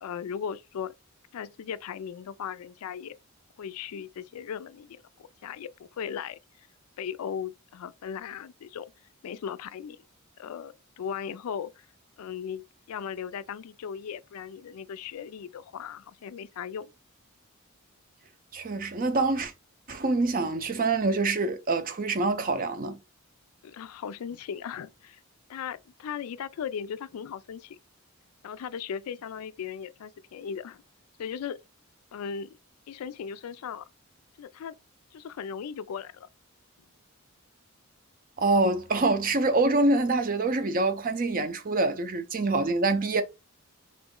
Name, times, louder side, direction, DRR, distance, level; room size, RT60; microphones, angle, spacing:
voice 1, 0.0-0.9 1.3-3.1 3.6-6.4 7.0-8.9 9.2-10.0 10.4-11.9 12.2-16.9 23.6-25.2 25.5-27.8 28.4-30.8 31.2-31.6 32.1-32.6 32.9-33.9 34.4-34.7 35.1-36.3, left 7 dB, 80° left, 0.3 m, -37 dB
voice 2, 18.5-19.5 19.9-23.0 38.4-43.2, right 3 dB, 40° right, 0.5 m, -25 dB
3.8 x 3.0 x 3.6 m
head